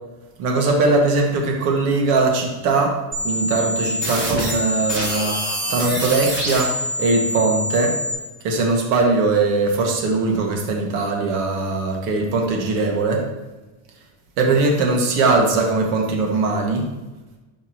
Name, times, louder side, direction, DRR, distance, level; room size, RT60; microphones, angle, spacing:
voice 1, 0.4-8.0 8.4-13.3 14.4-16.9, right 3 dB, 75° right, 0 dB, 1.9 m, -20 dB
sound 1, 3.1-8.1, equal, 25° right, 2.9 m, -25 dB
12.0 x 5.8 x 3.0 m, 1.1 s
supercardioid pair, 130°, 49 cm